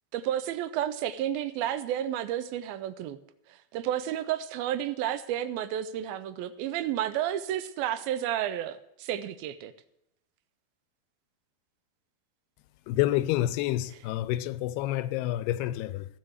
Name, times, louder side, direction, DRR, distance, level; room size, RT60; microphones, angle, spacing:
voice 1, 0.1-3.2 3.5-9.7 13.9-14.0, right 11 dB, 80° right, 2.3 m, -31 dB
voice 2, 12.9-16.1, left 14 dB, 85° left, 2.6 m, -28 dB
16.0 x 6.9 x 8.0 m
omnidirectional pair, 4.6 m